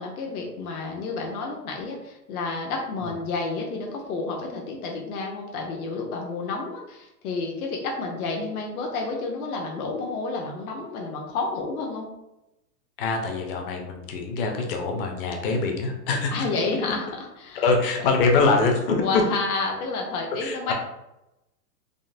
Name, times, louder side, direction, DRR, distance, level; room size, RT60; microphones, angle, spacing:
voice 1, 0.0-12.1 16.3-17.1 17.4-17.6 18.0-18.1 19.0-20.7, left 3 dB, 60° left, 0 dB, 0.8 m, -30 dB
voice 2, 13.0-16.5 17.0-17.1 17.6-19.3 20.4-20.7, left 3 dB, 35° left, 3 dB, 0.5 m, -24 dB
3.7 x 2.1 x 2.6 m, 0.91 s
hypercardioid pair, 135°, 50 cm